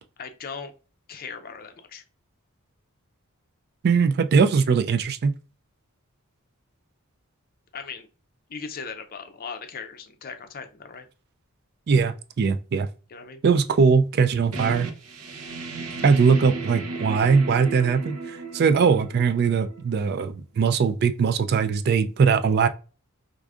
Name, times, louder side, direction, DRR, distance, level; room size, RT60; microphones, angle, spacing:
voice 1, 0.2-0.7 1.1-2.0 7.7-8.1 8.5-11.1 13.1-13.4, left 5 dB, 45° left, 0.5 m, -38 dB
voice 2, 3.8-5.3 11.9-12.9 13.4-14.9 16.0-22.7, right 5 dB, 50° right, 0.3 m, -21 dB
sound 1, 14.5-20.0, right 3 dB, 85° right, 0.6 m, -35 dB
4.7 x 2.5 x 2.3 m
head